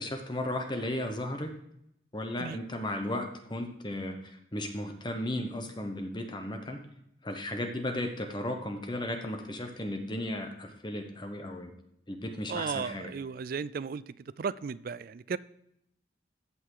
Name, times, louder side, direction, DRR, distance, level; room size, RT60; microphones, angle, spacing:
voice 1, 0.0-1.5 2.1-4.1 4.5-6.8 7.2-11.7 12.1-13.1, left 1 dB, 25° left, 5 dB, 0.9 m, -35 dB
voice 2, 12.5-15.4, right 5 dB, 50° right, 17 dB, 0.3 m, -35 dB
15.0 x 5.7 x 4.7 m, 0.77 s
head